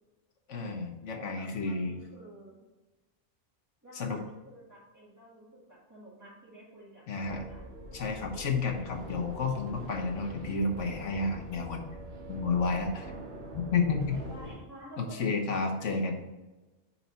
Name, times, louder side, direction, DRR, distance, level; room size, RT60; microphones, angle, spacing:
voice 1, 0.5-2.0 3.9-4.2 7.1-7.5 7.9-11.8 12.3-13.1 13.5-14.2 15.0-16.2, left 4 dB, 85° left, 3 dB, 1.3 m, -31 dB
voice 2, 1.2-2.6 3.8-7.6 13.1-13.7 14.1-15.7, right 1 dB, 15° right, -11 dB, 1.9 m, -51 dB
sound 1, 7.2-14.6, right 1 dB, 70° right, 1.8 m, -44 dB
6.0 x 4.1 x 4.3 m, 1.1 s
omnidirectional pair, 1.2 m